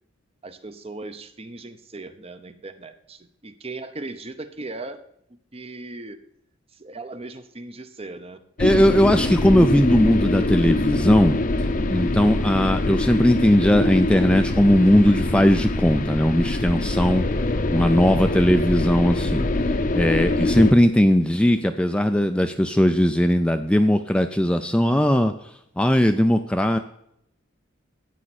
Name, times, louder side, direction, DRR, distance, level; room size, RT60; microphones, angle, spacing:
voice 1, 0.4-5.0 5.5-6.2 6.8-8.5, right 2 dB, 30° right, 10 dB, 0.7 m, -38 dB
sound 1, 8.6-20.7, left 2 dB, 40° left, 0.7 m, -24 dB
voice 2, 8.6-11.4 11.9-17.2 17.7-19.5 19.9-25.3 25.8-26.8, left 1 dB, 5° left, 7 dB, 0.4 m, -18 dB
13.5 x 8.9 x 4.2 m, 0.73 s
head